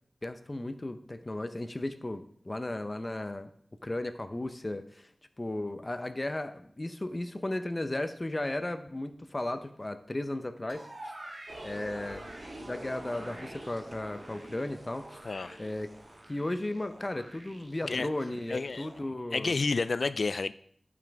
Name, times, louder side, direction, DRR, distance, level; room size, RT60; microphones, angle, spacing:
voice 1, 0.2-3.5 3.8-5.1 5.4-11.1 11.6-12.2 12.6-15.2 15.6-15.9 16.3-19.5, left 1 dB, 30° left, 9 dB, 0.6 m, -35 dB
sound 1, 10.7-19.0, right 1 dB, 65° right, 1.8 m, -49 dB
sound 2, 11.5-16.5, right 1 dB, 45° right, 3.3 m, -47 dB
voice 2, 15.2-15.6 17.9-18.1 18.5-18.9 19.3-20.5, left 3 dB, 75° left, 15 dB, 0.3 m, -30 dB
11.5 x 6.0 x 3.5 m, 0.62 s
wide cardioid pair, 80°, 0 cm